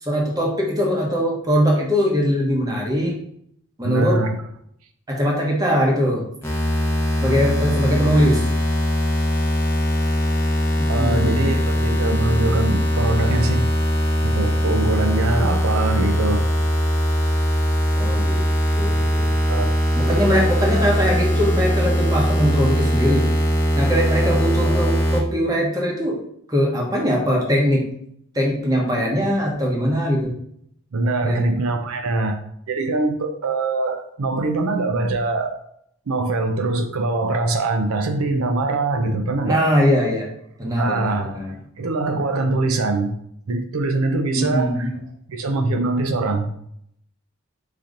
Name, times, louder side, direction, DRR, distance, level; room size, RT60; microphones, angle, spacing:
voice 1, 0.0-3.2 3.8-4.2 5.1-6.2 7.2-8.4 10.8-11.5 18.0-18.5 18.8-19.4 19.9-23.3 23.7-26.2 26.5-27.9 28.3-30.3 31.2-31.5 39.4-40.3 40.6-41.6 44.3-44.9, equal, 15° right, -2 dB, 0.9 m, -21 dB
voice 2, 3.8-4.4 10.9-13.7 14.2-16.4 19.5-19.7 20.1-20.2 30.9-35.6 36.1-39.6 40.7-41.4 41.8-43.1 43.5-44.9 45.3-46.5, right 2 dB, 85° right, 6 dB, 0.5 m, -23 dB
sound 1, 6.4-25.2, equal, 10° left, 0.7 m, -20 dB
4.9 x 2.9 x 3.8 m, 0.70 s
head